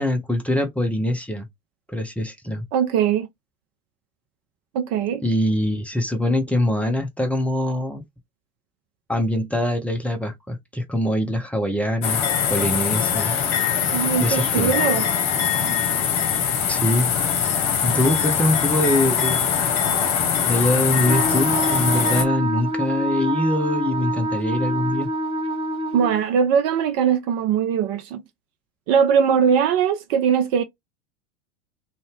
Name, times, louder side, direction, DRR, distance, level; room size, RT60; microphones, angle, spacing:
voice 1, 0.0-1.5 1.9-2.7 5.2-8.0 9.1-12.2 12.5-13.3 14.2-14.7 16.7-17.1 17.8-19.4 20.5-25.1, left 1 dB, 5° left, 0.6 m, -23 dB
voice 2, 2.7-3.3 4.7-5.2 13.9-15.0 25.9-28.2 28.9-30.6, right 7 dB, 40° right, 0.5 m, -20 dB
sound 1, 12.0-22.2, left 7 dB, 50° left, 1.0 m, -22 dB
Wind instrument woodwind instrument, 21.0-26.2, right 1 dB, 15° right, 0.9 m, -26 dB
2.6 x 2.4 x 3.3 m
figure-of-eight pair, 85°, 43 cm